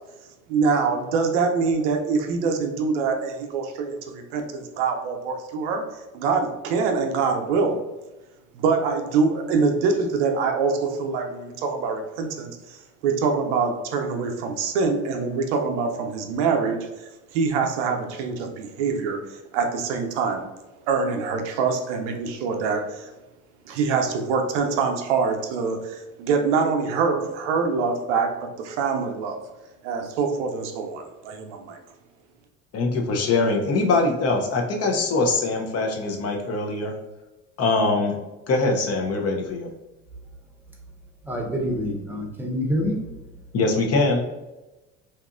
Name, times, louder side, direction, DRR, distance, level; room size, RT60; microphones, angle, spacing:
voice 1, 0.5-5.8 6.1-7.8 8.5-20.4 20.9-23.1 23.7-29.4 29.8-31.8, right 5 dB, 85° right, 4 dB, 0.5 m, -25 dB
voice 2, 32.7-36.9 37.6-38.2 38.5-39.7 43.5-44.2, left 3 dB, 45° left, 2 dB, 0.6 m, -22 dB
voice 3, 41.3-43.0, equal, 5° right, 0 dB, 0.7 m, -26 dB
2.8 x 2.4 x 2.4 m, 1.0 s
hypercardioid pair, 75°, 34 cm